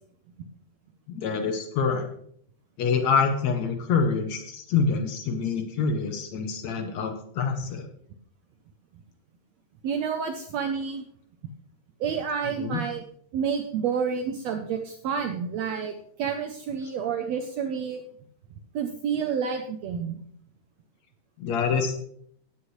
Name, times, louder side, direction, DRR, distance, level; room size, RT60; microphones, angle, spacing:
voice 1, 1.1-2.1 2.8-7.9 12.6-12.8 21.4-21.9, left 5 dB, 65° left, 5 dB, 2.0 m, -26 dB
voice 2, 9.8-11.0 12.0-13.0 13.3-15.9 16.2-18.0 18.7-20.2, right 6 dB, 75° right, 6 dB, 1.6 m, -29 dB
16.0 x 8.9 x 3.2 m, 0.66 s
omnidirectional pair, 3.8 m